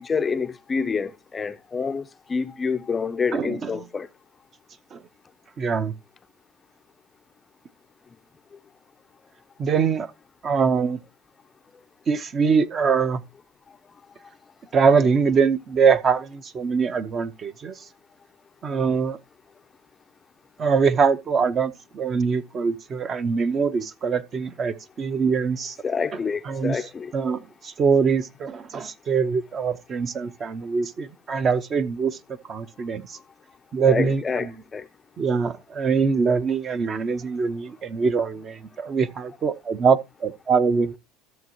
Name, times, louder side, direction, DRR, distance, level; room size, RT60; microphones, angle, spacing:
voice 1, 0.0-4.1 18.7-19.0 25.8-27.1 33.9-34.8, left 5 dB, 20° left, 0.5 m, -27 dB
voice 2, 3.3-3.8 4.9-5.0 5.6-5.9 9.6-10.1 10.4-11.0 12.1-13.2 14.7-17.8 18.6-19.2 20.6-25.8 26.5-26.8 27.1-32.2 32.5-33.2 33.7-34.4 35.2-41.0, right 5 dB, 30° right, 0.6 m, -23 dB
13.5 x 6.9 x 2.9 m
supercardioid pair, 130°, 0 cm